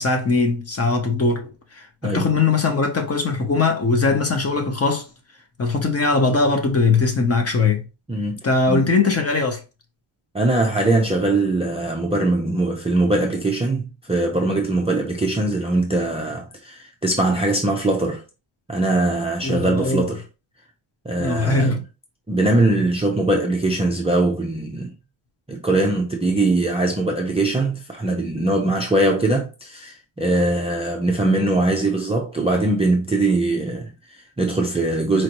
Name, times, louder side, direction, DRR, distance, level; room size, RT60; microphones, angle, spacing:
voice 1, 0.0-5.1 5.6-7.8 8.4-9.6 19.4-20.0 21.2-21.8, left 3 dB, 30° left, 0.7 m, -20 dB
voice 2, 8.1-8.4 8.7-8.9 10.3-18.2 18.7-20.2 21.1-21.8 22.3-24.9 25.5-35.2, right 2 dB, 15° right, 0.4 m, -21 dB
4.4 x 2.6 x 2.9 m
wide cardioid pair, 170°, 50 cm